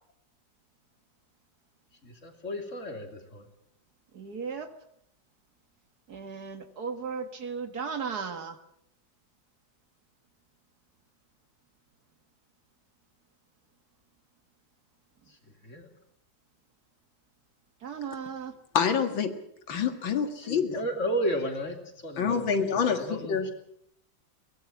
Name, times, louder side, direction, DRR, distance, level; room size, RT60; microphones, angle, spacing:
voice 1, 2.2-3.4 15.7-15.8 20.5-21.8 22.0-22.4 22.8-23.4, equal, 40° left, 5 dB, 3.3 m, -32 dB
voice 2, 4.1-4.8 6.1-8.6 17.8-18.6, right 6 dB, 55° right, 8 dB, 2.1 m, -36 dB
voice 3, 18.7-19.3 19.7-20.8 22.2-23.5, left 6 dB, 90° left, 7 dB, 2.6 m, -27 dB
23.0 x 19.0 x 7.3 m, 0.71 s
omnidirectional pair, 2.0 m